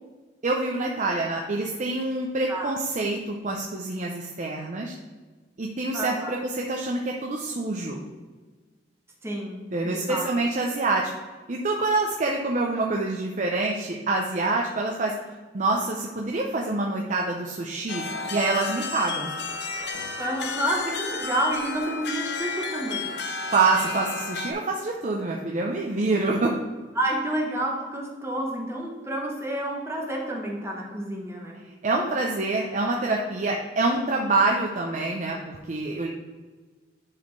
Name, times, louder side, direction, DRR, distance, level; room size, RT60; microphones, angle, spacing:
voice 1, 0.4-5.0 5.6-8.1 9.7-11.1 11.5-15.1 15.5-19.3 23.5-26.6 31.8-36.1, right 3 dB, 45° right, 0 dB, 0.6 m, -26 dB
voice 2, 2.5-2.8 5.9-6.3 9.2-10.2 20.2-23.1 26.9-31.6, right 1 dB, 15° right, -1 dB, 0.9 m, -29 dB
sound 1, 17.9-24.5, left 4 dB, 70° left, 0.7 m, -32 dB
10.0 x 4.2 x 3.1 m, 1.3 s
head